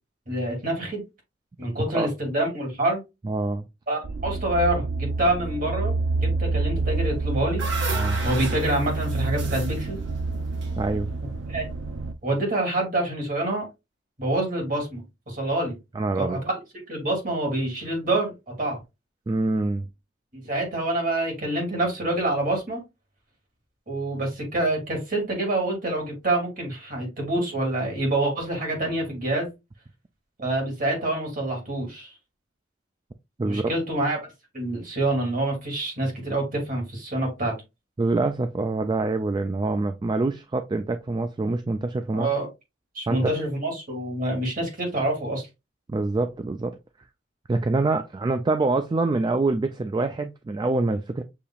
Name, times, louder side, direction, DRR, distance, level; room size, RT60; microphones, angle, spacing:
voice 1, 0.3-1.0 1.6-3.0 3.9-5.9 6.2-7.6 8.2-10.0 11.5-11.7 12.2-13.7 14.2-15.8 16.1-16.5 16.9-18.8 20.3-22.8 23.9-29.5 30.4-32.1 33.4-34.2 34.5-37.6 42.1-42.5 42.9-45.4, right 1 dB, 45° right, 2.4 m, -26 dB
voice 2, 3.2-3.7 6.2-6.3 7.9-8.2 10.8-11.1 15.9-16.4 19.3-19.9 33.4-33.7 38.0-42.3 43.1-43.3 45.9-46.8 47.5-51.2, right 3 dB, 25° right, 0.3 m, -25 dB
sound 1, 4.0-12.1, right 3 dB, 80° right, 0.6 m, -28 dB
sound 2, 7.1-11.4, right 3 dB, 60° right, 1.5 m, -35 dB
6.8 x 2.9 x 2.3 m
head